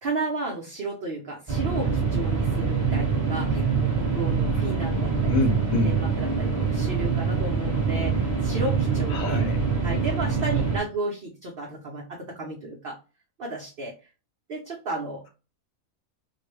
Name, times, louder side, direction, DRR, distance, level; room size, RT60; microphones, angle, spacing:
voice 1, 0.0-5.4 5.8-9.5 9.8-12.9 13.4-13.9 14.5-15.2, right 2 dB, 50° right, -1 dB, 0.7 m, -33 dB
sound 1, 1.5-10.8, right 5 dB, 20° right, 1.1 m, -25 dB
voice 2, 5.3-5.9 9.1-9.6, left 2 dB, 70° left, 5 dB, 1.2 m, -25 dB
3.7 x 2.1 x 3.2 m, 0.32 s
omnidirectional pair, 1.5 m